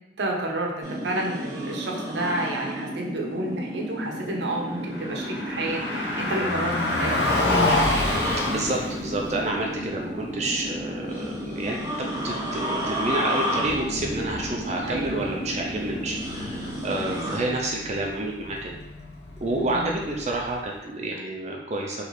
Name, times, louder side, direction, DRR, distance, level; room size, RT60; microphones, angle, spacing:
voice 1, 0.2-7.2 11.8-11.9 14.8-15.3 17.0-17.3 19.5-19.9, right 2 dB, 75° right, 0 dB, 0.8 m, -30 dB
sound 1, 0.8-17.4, equal, 20° right, 0.9 m, -32 dB
Car passing by, 4.6-20.7, left 2 dB, 65° left, 0.7 m, -31 dB
voice 2, 8.4-18.8 19.4-22.0, right 2 dB, 40° right, 0 dB, 0.4 m, -29 dB
3.1 x 3.1 x 4.0 m, 0.96 s
head